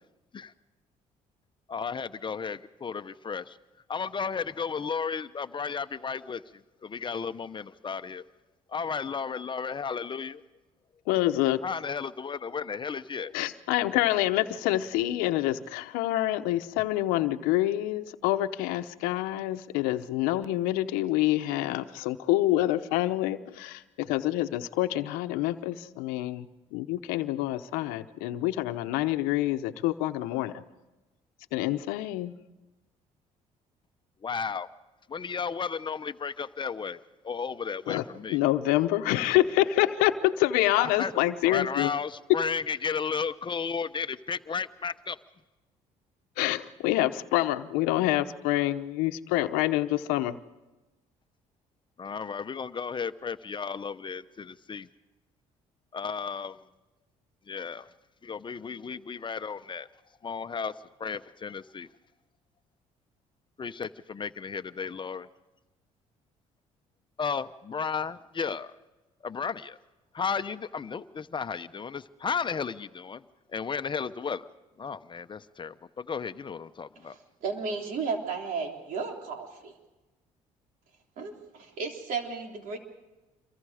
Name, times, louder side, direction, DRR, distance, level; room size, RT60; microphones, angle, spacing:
voice 1, 1.7-3.6 3.9-6.4 6.8-8.2 8.7-10.4 11.6-13.3 34.2-34.7 35.1-38.4 40.8-41.1 41.5-45.2 52.0-54.9 55.9-56.6 57.5-57.9 58.2-59.9 60.2-61.9 63.6-65.3 67.2-68.7 69.2-69.8 70.1-73.2 73.5-74.5 74.8-77.1, left 6 dB, 35° left, 12 dB, 0.9 m, -34 dB
voice 2, 11.1-11.6 13.3-26.5 26.7-30.5 31.5-32.3 37.9-38.0 38.3-41.9 46.4-50.4, left 15 dB, 90° left, 10 dB, 0.9 m, -27 dB
voice 3, 77.0-79.7 81.2-82.8, right 5 dB, 70° right, 3 dB, 3.6 m, -34 dB
27.0 x 23.5 x 5.0 m, 1.1 s
supercardioid pair, 70°, 14 cm